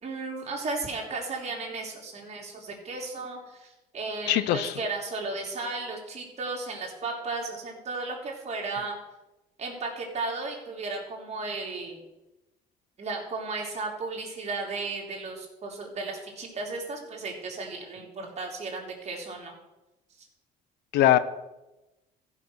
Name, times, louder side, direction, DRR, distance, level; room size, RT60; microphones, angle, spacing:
voice 1, 0.0-9.0 9.6-12.0 13.0-19.6 20.2-20.3, right 3 dB, 40° right, 0 dB, 3.3 m, -35 dB
voice 2, 4.3-4.7 20.9-21.2, left 13 dB, 90° left, 14 dB, 0.7 m, -21 dB
14.5 x 5.9 x 6.2 m, 1.0 s
cardioid pair, 110°, 17 cm